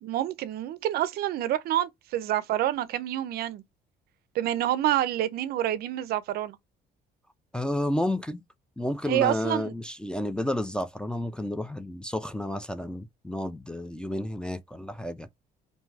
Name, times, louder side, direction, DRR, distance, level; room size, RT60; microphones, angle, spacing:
voice 1, 0.0-3.6 4.4-6.6 9.1-9.7, right 12 dB, 65° right, 0.4 m, -27 dB
voice 2, 7.5-8.4 8.8-15.3, left 1 dB, 5° left, 0.3 m, -31 dB
2.6 x 2.3 x 3.1 m
cardioid pair, 110°, 17 cm